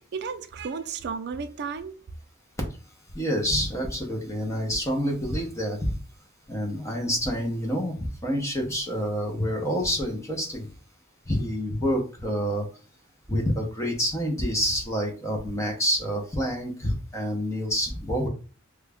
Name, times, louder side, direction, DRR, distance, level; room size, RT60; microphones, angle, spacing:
voice 1, 0.0-2.0, right 5 dB, 50° right, 0.3 m, -33 dB
voice 2, 3.1-6.0 6.5-10.7 11.3-12.7 13.3-18.3, equal, 15° left, 0.7 m, -27 dB
3.1 x 2.3 x 3.4 m
head